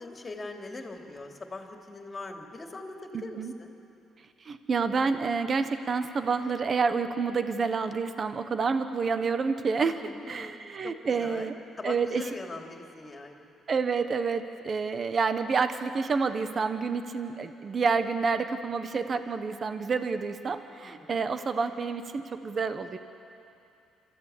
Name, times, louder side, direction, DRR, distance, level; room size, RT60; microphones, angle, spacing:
voice 1, 0.0-3.7 9.9-10.6 10.8-13.5 20.8-21.2, left 2 dB, 30° left, 2 dB, 3.0 m, -42 dB
voice 2, 3.1-3.5 4.4-10.0 10.3-11.5 11.8-12.2 13.7-23.0, right 5 dB, 45° right, 9 dB, 1.2 m, -28 dB
26.5 x 14.5 x 8.5 m, 2.7 s
cardioid pair, 80°, 0 cm